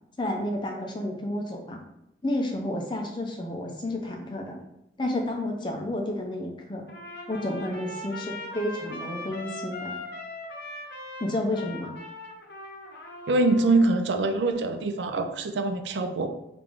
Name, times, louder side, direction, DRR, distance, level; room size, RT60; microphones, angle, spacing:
voice 1, 0.2-1.8 2.2-4.6 5.0-6.9 7.3-9.9 11.2-11.9, left 1 dB, 25° left, 2 dB, 0.4 m, -31 dB
Trumpet, 6.9-14.0, left 1 dB, 70° left, 0.6 m, -40 dB
voice 2, 13.3-16.3, right 2 dB, 85° right, 6 dB, 0.4 m, -24 dB
3.2 x 2.5 x 3.5 m, 0.85 s
head